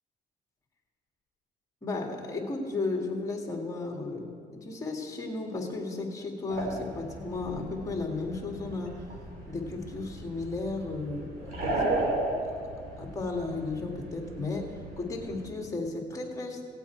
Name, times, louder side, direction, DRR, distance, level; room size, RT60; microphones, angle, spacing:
voice 1, 1.8-9.0 9.5-12.2 13.0-14.7 15.0-16.6, left 3 dB, 20° left, 1 dB, 2.0 m, -34 dB
sound 1, 6.5-15.5, right 2 dB, 60° right, 3.2 m, -35 dB
17.0 x 8.3 x 4.6 m, 2.2 s
cardioid pair, 110°, 17 cm